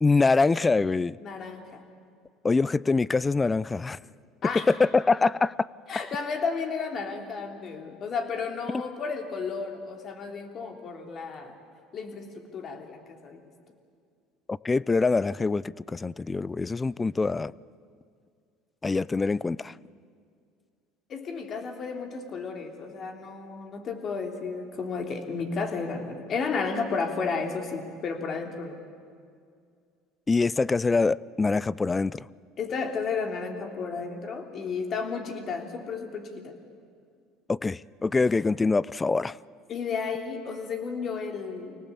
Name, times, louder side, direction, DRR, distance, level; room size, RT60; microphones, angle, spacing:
voice 1, 0.0-1.2 2.4-4.0 4.7-5.7 14.5-17.5 18.8-19.7 30.3-32.3 37.5-39.4, left 3 dB, 20° left, 21 dB, 0.5 m, -24 dB
voice 2, 1.2-1.8 4.4-4.7 5.9-11.6 11.9-13.4 21.1-28.8 32.6-36.5 39.7-41.8, left 5 dB, 45° left, 4 dB, 3.5 m, -33 dB
26.0 x 18.5 x 8.6 m, 2.2 s
supercardioid pair, 90°, 0 cm